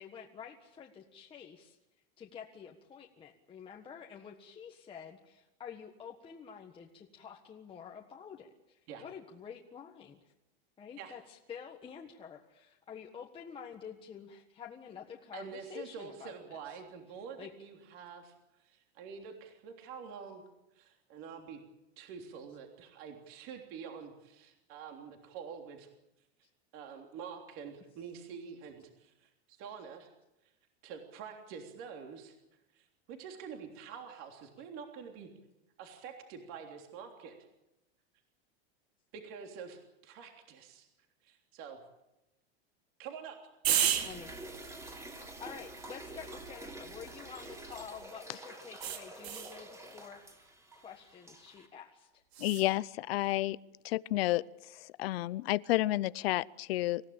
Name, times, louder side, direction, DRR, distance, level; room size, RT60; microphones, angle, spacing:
voice 1, 0.0-1.8 2.2-10.3 10.8-16.3 17.4-17.5 44.0-44.3 45.4-52.2, left 7 dB, 15° left, 0 dB, 1.5 m, -49 dB
voice 2, 15.3-18.3 18.6-20.4 20.7-21.6 22.0-25.9 26.7-30.1 30.4-30.5 30.8-32.3 32.7-35.3 35.8-37.4 39.1-40.9 41.2-41.8 43.0-43.4, right 6 dB, 40° right, 3 dB, 3.3 m, -47 dB
sound 1, 43.6-48.0 48.8-49.6 52.3-52.7, right 10 dB, 75° right, 3.7 m, -36 dB
sound 2, 43.7-51.7, right 1 dB, 10° right, 3.0 m, -48 dB
voice 3, 52.4-53.6 53.8-54.4 54.7-57.0, left 17 dB, 70° left, 19 dB, 0.7 m, -31 dB
27.0 x 16.0 x 8.8 m, 0.94 s
supercardioid pair, 160°, 31 cm